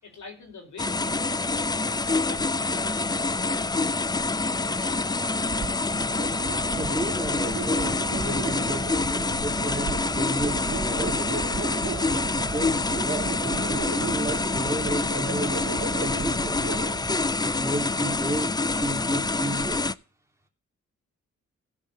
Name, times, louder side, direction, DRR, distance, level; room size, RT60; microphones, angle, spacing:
voice 1, 0.0-2.0 2.2-3.8 4.4-5.9, left 3 dB, 80° left, 0 dB, 4.6 m, -47 dB
sound 1, 0.8-19.9, left 3 dB, 15° left, 0.4 m, -26 dB
sound 2, 5.5-17.2, right 5 dB, 55° right, 2.6 m, -35 dB
voice 2, 6.7-11.2 12.1-15.6 16.0-16.6 17.4-19.9, right 1 dB, 10° right, 1 dB, 2.9 m, -33 dB
16.0 x 5.4 x 5.6 m, 0.36 s
cardioid pair, 60°, 30 cm